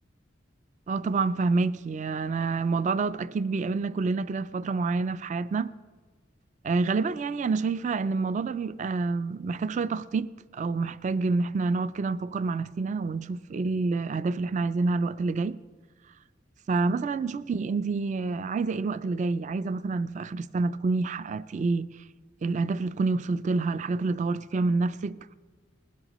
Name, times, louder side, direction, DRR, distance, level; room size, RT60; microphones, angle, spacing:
voice 1, 0.9-5.7 6.6-15.6 16.7-22.0 22.4-25.3, right 3 dB, 40° right, 0.3 m, -28 dB
20.0 x 12.0 x 3.0 m
head